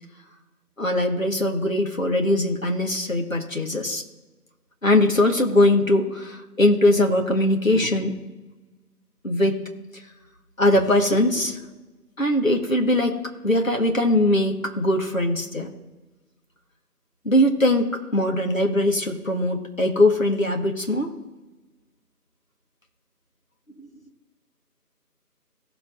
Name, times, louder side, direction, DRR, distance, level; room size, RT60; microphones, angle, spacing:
voice 1, 0.8-4.0 4.8-8.2 9.2-9.6 10.6-11.6 12.2-15.7 17.2-21.1 23.8-23.9, left 1 dB, 55° left, 3 dB, 1.7 m, -21 dB
17.5 x 7.7 x 2.6 m, 1.2 s
figure-of-eight pair, 170°, 48 cm